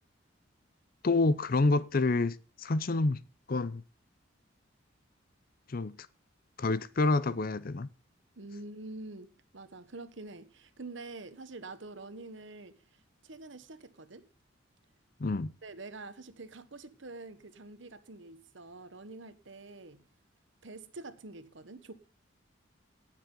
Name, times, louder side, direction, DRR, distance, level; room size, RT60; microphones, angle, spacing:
voice 1, 1.0-3.2 3.5-3.8 5.7-5.9 6.6-7.9 15.2-15.5, left 3 dB, 45° left, 0.6 m, -28 dB
voice 2, 8.4-14.3 15.6-20.0 20.6-21.9, right 2 dB, 65° right, 1.1 m, -46 dB
17.0 x 7.4 x 3.8 m
head